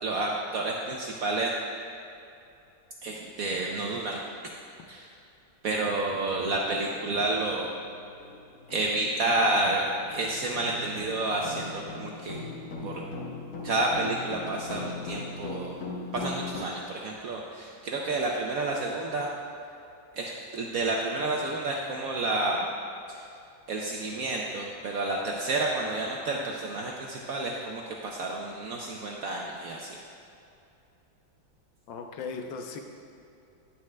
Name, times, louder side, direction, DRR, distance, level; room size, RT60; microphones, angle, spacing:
voice 1, 0.0-1.5 3.0-4.2 4.9-5.0 5.6-7.7 8.7-9.8 10.1-12.4 12.8-13.0 13.6-15.8 16.1-19.3 20.1-22.7 23.1-23.2 23.7-30.0, right 2 dB, 70° right, -1 dB, 0.8 m, -30 dB
sound 1, 6.0-6.1 6.6-6.8 7.2-16.6, left 3 dB, 60° left, 1.1 m, -40 dB
voice 2, 31.9-32.8, left 4 dB, 75° left, 4 dB, 1.4 m, -37 dB
9.8 x 9.4 x 2.2 m, 2.7 s
omnidirectional pair, 2.1 m